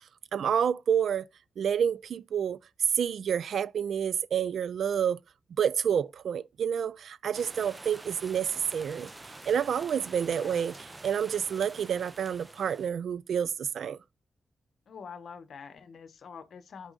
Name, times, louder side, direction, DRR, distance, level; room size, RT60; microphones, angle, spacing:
voice 1, 0.3-1.2 1.6-2.6 3.0-5.2 5.6-9.1 9.5-10.7 11.0-14.0, right 8 dB, 75° right, 0.3 m, -29 dB
sound 1, 7.3-12.9, right 2 dB, 20° right, 0.6 m, -47 dB
voice 2, 10.1-10.7 14.9-16.9, left 6 dB, 65° left, 0.9 m, -46 dB
6.2 x 4.8 x 3.9 m
wide cardioid pair, 120°, 0 cm